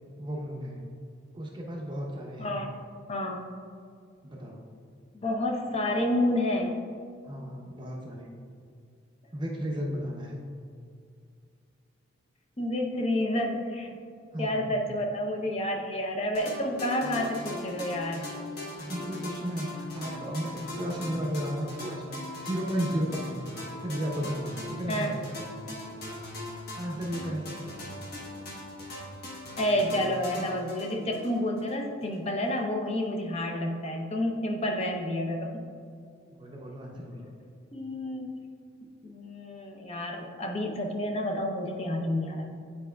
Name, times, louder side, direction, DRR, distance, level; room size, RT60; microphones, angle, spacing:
voice 1, 0.2-0.8 1.3-2.5 4.2-4.6 7.2-8.3 9.3-10.4 14.3-14.7 18.7-23.4 23.8-25.3 25.7-25.9 26.7-27.8 36.3-37.3, equal, 25° right, -1 dB, 0.6 m, -34 dB
voice 2, 2.4-2.7 3.1-3.4 5.1-6.8 12.6-13.9 14.4-18.2 24.9-25.1 29.6-35.6 37.7-38.5 39.0-42.5, left 1 dB, 30° left, 2 dB, 0.7 m, -29 dB
sound 1, 16.3-31.8, left 1 dB, 50° left, 1.2 m, -40 dB
9.6 x 4.6 x 2.3 m, 2.3 s
head